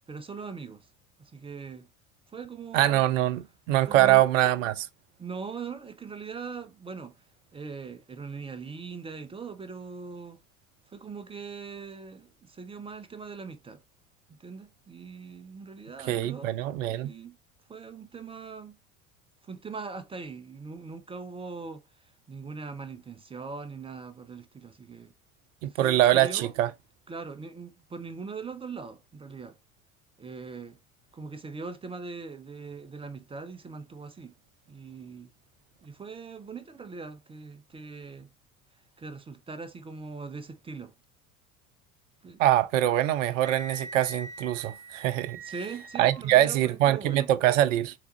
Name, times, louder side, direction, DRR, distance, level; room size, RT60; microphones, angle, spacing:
voice 1, 0.1-0.9 1.2-1.9 2.3-3.1 3.9-4.3 5.2-7.2 7.5-10.4 10.9-13.8 14.4-16.5 17.0-17.4 17.7-18.8 19.4-21.8 22.3-25.1 25.7-26.5 27.1-29.6 30.2-30.8 31.1-34.3 34.7-35.3 35.8-38.3 39.0-40.9 42.2-42.4 45.4-47.3, right 4 dB, 15° right, 0.5 m, -41 dB
voice 2, 2.7-4.9 16.1-17.1 25.6-26.7 42.4-45.4 46.0-47.9, right 13 dB, 65° right, 0.6 m, -23 dB
Wind instrument woodwind instrument, 43.4-46.2, right 2 dB, 5° left, 1.6 m, -43 dB
3.9 x 3.4 x 3.0 m
figure-of-eight pair, 70°, 43 cm